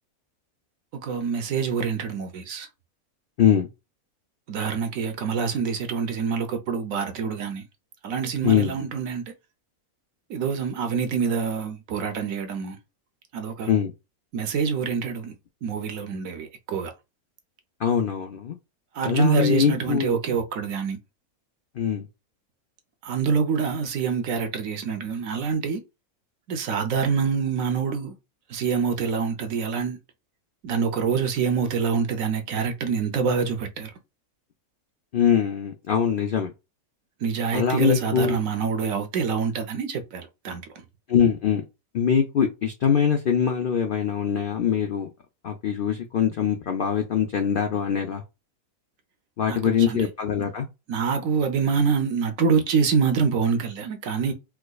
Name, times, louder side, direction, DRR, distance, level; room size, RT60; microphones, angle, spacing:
voice 1, 1.0-2.7 4.5-7.7 8.0-9.2 10.3-12.8 13.3-13.7 14.3-15.3 15.6-16.9 18.9-21.0 23.0-25.8 26.5-28.2 28.5-30.0 30.6-33.9 37.2-40.7 49.5-50.0 50.9-54.3, right 6 dB, 70° right, 1.0 m, -26 dB
voice 2, 17.8-18.6 19.0-20.2 21.8-22.1 35.1-36.5 37.5-38.4 41.1-41.6 41.9-45.1 45.4-48.2 49.4-50.7, left 8 dB, 80° left, 0.4 m, -23 dB
4.6 x 2.2 x 2.3 m
omnidirectional pair, 1.5 m